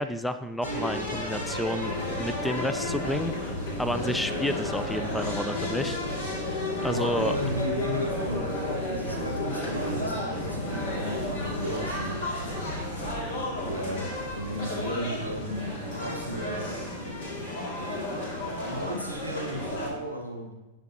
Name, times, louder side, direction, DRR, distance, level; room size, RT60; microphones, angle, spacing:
voice 1, 0.0-3.5 3.8-6.0 6.8-7.4, left 1 dB, 5° left, 11 dB, 0.4 m, -30 dB
sound 1, 0.6-19.9, left 1 dB, 55° left, 2.2 m, -32 dB
voice 2, 6.8-12.2 13.6-14.0 14.3-16.7 18.3-20.6, equal, 85° left, 1 dB, 1.6 m, -34 dB
17.0 x 5.9 x 2.8 m, 1.1 s
figure-of-eight pair, 90°, 0 cm